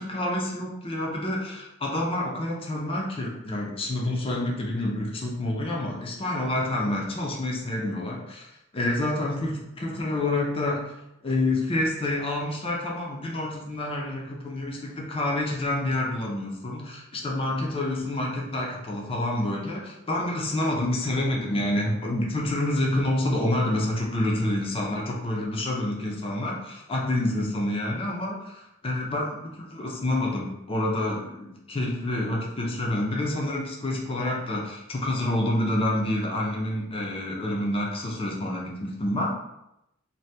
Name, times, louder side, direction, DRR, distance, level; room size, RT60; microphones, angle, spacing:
voice 1, 0.0-9.5 9.8-10.8 11.2-39.3, left 1 dB, 25° left, -1 dB, 0.5 m, -28 dB
2.7 x 2.2 x 3.2 m, 0.85 s
head